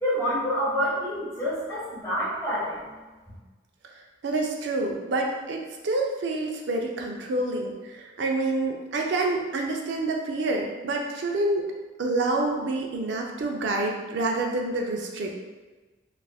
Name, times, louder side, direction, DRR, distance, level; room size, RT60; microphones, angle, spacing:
voice 1, 0.0-2.9, equal, 15° left, -10 dB, 1.2 m, -27 dB
voice 2, 4.2-11.7 12.0-15.3, right 2 dB, 70° right, 1 dB, 0.4 m, -27 dB
3.3 x 2.4 x 2.2 m, 1.2 s
head